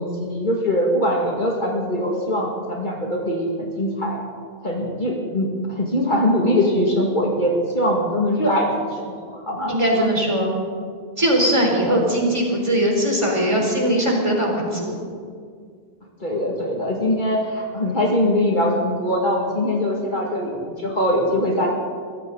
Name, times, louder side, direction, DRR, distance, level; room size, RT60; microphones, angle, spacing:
voice 1, 0.0-4.2 4.6-10.0 11.8-12.0 16.2-21.7, left 1 dB, 50° left, -2 dB, 2.4 m, -22 dB
voice 2, 9.7-10.5 11.2-15.0, equal, 30° right, -1 dB, 3.9 m, -20 dB
23.5 x 15.5 x 4.0 m, 2.1 s
omnidirectional pair, 1.0 m